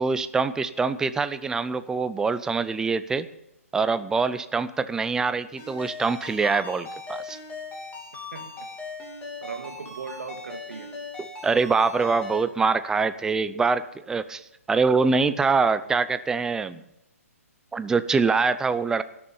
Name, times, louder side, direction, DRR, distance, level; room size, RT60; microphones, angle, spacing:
voice 1, 0.0-3.3 3.7-7.4 11.2-14.4 14.7-16.8 17.7-19.0, right 4 dB, 5° right, 13 dB, 0.6 m, -24 dB
Ringtone, 5.6-12.4, left 3 dB, 15° left, 3.2 m, -39 dB
voice 2, 8.1-8.7 9.4-11.0, right 5 dB, 65° right, 6 dB, 2.1 m, -38 dB
17.5 x 6.9 x 8.8 m, 0.87 s
figure-of-eight pair, 130°, 8 cm